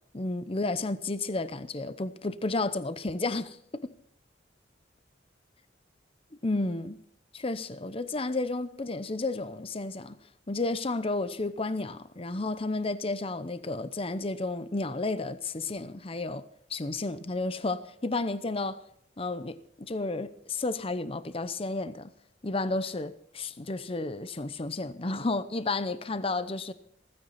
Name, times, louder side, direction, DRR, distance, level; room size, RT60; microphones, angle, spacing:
voice 1, 0.1-3.9 6.4-7.0 7.3-10.2 10.5-18.8 19.2-22.1 22.4-26.7, left 2 dB, 30° left, 0.7 m, -32 dB
16.0 x 15.0 x 4.2 m
head